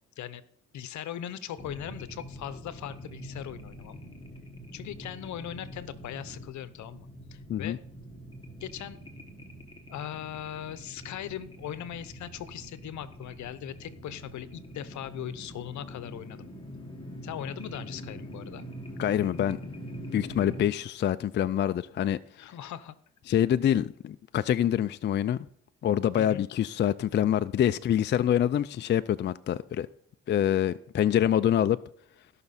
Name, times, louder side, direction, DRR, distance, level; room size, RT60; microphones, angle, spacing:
voice 1, 0.7-4.0 4.7-7.8 8.6-9.0 9.9-16.5 17.2-18.6 22.4-23.0 26.1-26.4, left 10 dB, 70° left, 0.8 m, -39 dB
sound 1, 1.6-20.7, equal, 15° left, 1.7 m, -44 dB
voice 2, 19.0-19.6 20.1-22.2 23.3-25.4 25.8-29.9 30.3-31.8, left 10 dB, 40° left, 0.4 m, -25 dB
16.0 x 5.9 x 4.2 m
cardioid pair, 90°, 30 cm